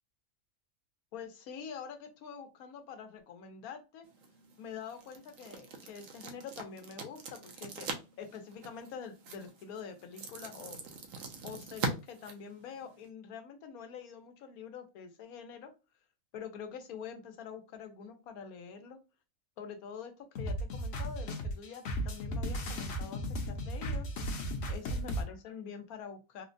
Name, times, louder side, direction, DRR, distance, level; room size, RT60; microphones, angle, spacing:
voice 1, 1.1-4.1 4.6-7.9 8.2-10.8 11.4-15.7 16.3-19.0 19.6-24.1 24.7-26.5, left 6 dB, 85° left, 7 dB, 1.2 m, -46 dB
sound 1, 4.0-13.1, right 4 dB, 70° right, 1.1 m, -43 dB
sound 2, 20.4-25.2, equal, 55° left, 0.9 m, -35 dB
3.7 x 2.1 x 2.5 m, 0.29 s
omnidirectional pair, 1.5 m